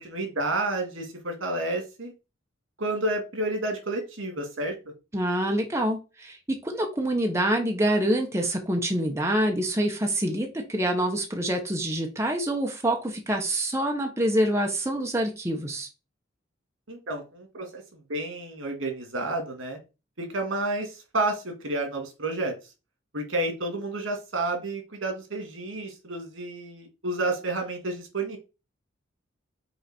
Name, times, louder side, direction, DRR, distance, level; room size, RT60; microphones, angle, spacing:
voice 1, 0.0-2.1 2.8-4.7 16.9-17.8 18.1-19.8 20.2-22.5 23.1-28.4, right 2 dB, 80° right, 4 dB, 2.2 m, -30 dB
voice 2, 5.1-15.9, right 1 dB, 15° right, 2 dB, 1.0 m, -26 dB
5.6 x 4.1 x 4.3 m, 0.29 s
head